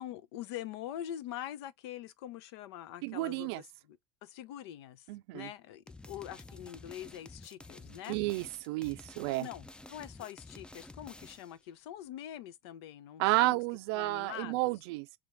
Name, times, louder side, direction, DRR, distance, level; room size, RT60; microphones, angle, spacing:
voice 1, 0.0-8.2 9.4-13.6 13.9-14.7, left 11 dB, 75° left, 0.6 m, -44 dB
voice 2, 3.0-3.6 5.1-5.5 8.1-9.5 13.2-15.1, right 20 dB, 70° right, 0.4 m, -31 dB
sound 1, 5.9-11.6, left 2 dB, 5° left, 0.4 m, -51 dB
3.4 x 3.3 x 3.1 m
hypercardioid pair, 75°, 14 cm